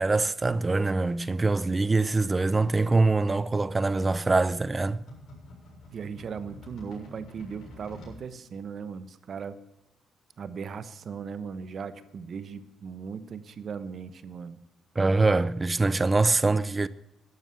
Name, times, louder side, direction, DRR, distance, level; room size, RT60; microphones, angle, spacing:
voice 1, 0.0-5.0 15.0-16.9, right 3 dB, 25° right, 0.6 m, -24 dB
sound 1, 3.0-8.2, left 1 dB, 75° left, 7.0 m, -49 dB
voice 2, 5.9-9.6 10.4-14.6, right 6 dB, 55° right, 1.0 m, -38 dB
12.0 x 11.0 x 7.6 m
cardioid pair, 90°, 0 cm